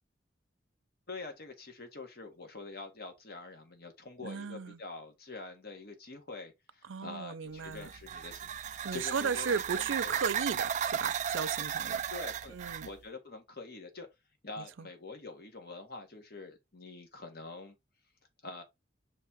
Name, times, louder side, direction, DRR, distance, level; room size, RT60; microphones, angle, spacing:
voice 1, 1.1-10.0 12.1-12.6 12.8-14.1 14.4-17.8 18.4-18.6, left 3 dB, 55° left, 1.6 m, -45 dB
voice 2, 4.2-4.8 6.9-7.9 8.8-12.0 12.5-12.9 14.6-14.9, right 5 dB, 85° right, 0.6 m, -36 dB
sound 1, 7.6-12.9, right 8 dB, 40° right, 0.3 m, -35 dB
6.3 x 3.7 x 4.5 m
head